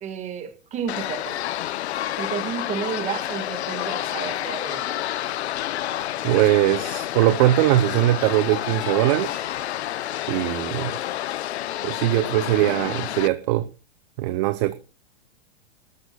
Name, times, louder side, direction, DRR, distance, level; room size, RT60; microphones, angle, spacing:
voice 1, 0.0-1.4 2.2-4.8, right 7 dB, 20° right, 1.7 m, -31 dB
sound 1, 0.9-13.3, left 13 dB, 70° left, 0.8 m, -29 dB
sound 2, 1.1-12.1, left 8 dB, 45° left, 4.4 m, -41 dB
voice 2, 6.2-9.4 10.3-10.9 11.8-13.7 14.2-14.7, right 15 dB, 40° right, 0.7 m, -21 dB
20.0 x 13.0 x 2.3 m
hypercardioid pair, 145°, 34 cm